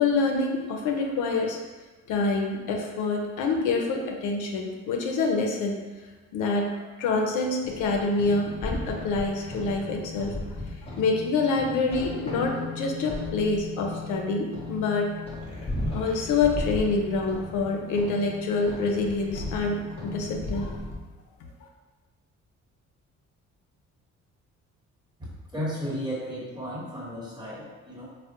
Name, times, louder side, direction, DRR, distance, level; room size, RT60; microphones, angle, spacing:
voice 1, 0.0-1.6 2.1-5.8 6.3-6.7 7.0-10.4 11.0-15.1 15.9-20.8, left 3 dB, 80° left, 2 dB, 0.5 m, -26 dB
sound 1, 7.6-21.0, left 2 dB, 20° left, 0.7 m, -36 dB
voice 2, 25.5-28.1, equal, 15° right, -7 dB, 1.1 m, -34 dB
3.3 x 2.1 x 2.8 m, 1.3 s
cardioid pair, 90°, 30 cm